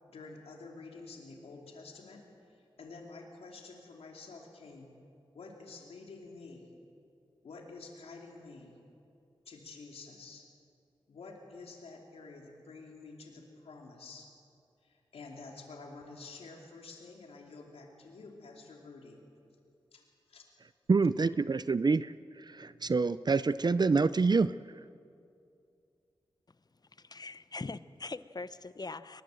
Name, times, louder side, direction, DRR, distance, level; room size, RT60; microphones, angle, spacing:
voice 1, 0.1-4.9 5.3-6.7 7.4-8.8 9.4-10.5 11.1-14.3 14.8-19.2 19.9-20.4, left 3 dB, 90° left, 1 dB, 2.9 m, -49 dB
voice 2, 20.9-24.5, right 4 dB, 45° right, 15 dB, 0.5 m, -27 dB
voice 3, 26.9-29.2, left 3 dB, 45° left, 14 dB, 0.9 m, -42 dB
23.0 x 21.0 x 7.7 m, 2.5 s
cardioid pair, 40°, 10 cm